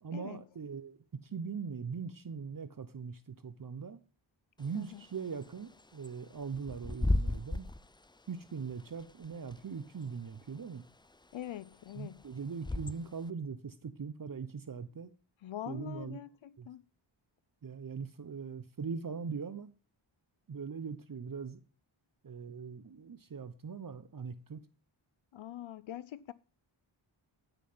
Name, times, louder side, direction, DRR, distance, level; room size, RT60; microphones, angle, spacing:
voice 1, 0.0-4.0 4.6-7.7 8.3-10.9 11.9-15.1 15.7-16.2 16.6-16.7 17.6-19.7 20.5-21.6 22.2-24.7, right 5 dB, 45° right, 0.9 m, -41 dB
Bird / Wind, 4.6-13.3, left 2 dB, 10° left, 0.5 m, -37 dB
voice 2, 11.3-12.2 15.4-16.8 25.3-26.3, left 12 dB, 70° left, 0.6 m, -43 dB
13.0 x 5.8 x 5.6 m
cardioid pair, 70°, 48 cm